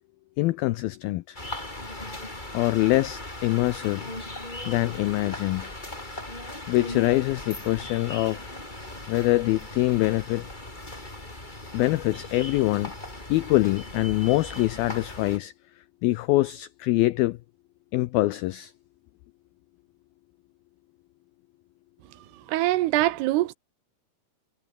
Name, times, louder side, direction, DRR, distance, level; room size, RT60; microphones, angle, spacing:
voice 1, 0.4-1.4 2.5-4.0 4.7-5.7 6.7-8.5 9.1-10.5 11.7-12.9 13.3-15.5 16.0-17.4 17.9-18.7, left 18 dB, 85° left, 2.1 m, -24 dB
sound 1, 1.3-15.4, left 1 dB, 10° left, 4.5 m, -38 dB
voice 2, 22.1-23.5, right 16 dB, 75° right, 2.7 m, -24 dB
omnidirectional pair, 5.1 m